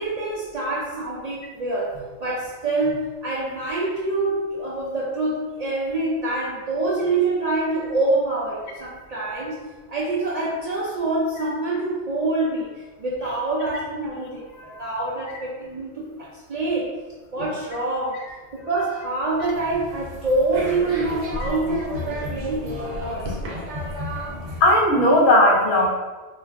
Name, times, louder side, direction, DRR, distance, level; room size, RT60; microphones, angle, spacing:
voice 1, 0.0-9.6 9.9-12.7 13.0-14.4 14.8-16.9 17.3-23.4, right 2 dB, 90° right, -7 dB, 0.3 m, -26 dB
voice 2, 14.5-14.9 17.4-17.5 21.4-21.5 24.6-25.9, left 1 dB, 65° left, 0 dB, 0.8 m, -17 dB
sound 1, 19.4-24.8, equal, 70° right, 0.9 m, -32 dB
2.4 x 2.2 x 3.3 m, 1.3 s
omnidirectional pair, 1.3 m